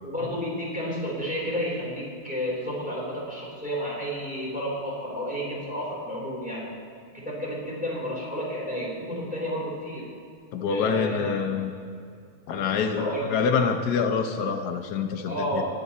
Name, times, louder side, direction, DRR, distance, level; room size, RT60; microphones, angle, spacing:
voice 1, 0.0-6.7 7.1-10.1 10.7-11.4 13.0-13.3 15.2-15.6, equal, 5° right, -5 dB, 3.3 m, -31 dB
voice 2, 10.5-11.7 12.5-15.6, left 6 dB, 90° left, 6 dB, 1.4 m, -26 dB
20.0 x 7.8 x 4.2 m, 2.5 s
omnidirectional pair, 1.6 m